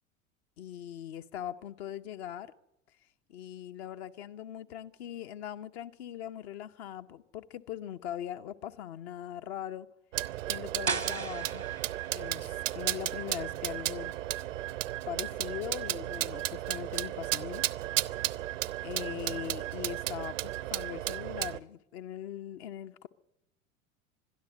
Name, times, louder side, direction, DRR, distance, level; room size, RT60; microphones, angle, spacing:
voice 1, 0.6-2.5 3.3-9.9 10.5-11.6 12.1-14.1 15.1-17.6 18.8-23.1, left 11 dB, 55° left, 1.0 m, -41 dB
sound 1, 10.1-21.6, right 14 dB, 70° right, 0.7 m, -34 dB
sound 2, 10.9-16.5, right 5 dB, 90° right, 1.2 m, -40 dB
22.0 x 12.5 x 9.3 m
figure-of-eight pair, 75°, 40 cm